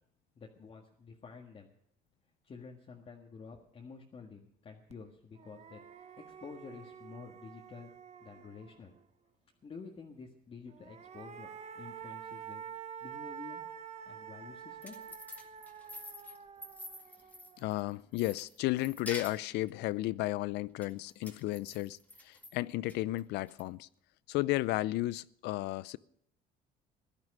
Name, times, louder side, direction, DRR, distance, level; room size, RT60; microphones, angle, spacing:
voice 1, 0.4-1.7 2.4-7.9 8.2-8.9 9.6-11.5 11.8-12.6 13.0-13.6 14.1-15.2, left 5 dB, 35° left, 1.8 m, -50 dB
sound 1, 4.9-5.0 5.3-9.0 10.7-17.9, right 8 dB, 40° right, 1.1 m, -48 dB
sound 2, 14.6-17.8 18.2-19.7 20.8-22.5 22.9-23.6, left 1 dB, 10° left, 2.0 m, -47 dB
voice 2, 17.6-22.0 22.2-23.9 24.3-26.0, left 17 dB, 85° left, 0.5 m, -33 dB
16.0 x 11.5 x 6.6 m
cardioid pair, 110°, 17 cm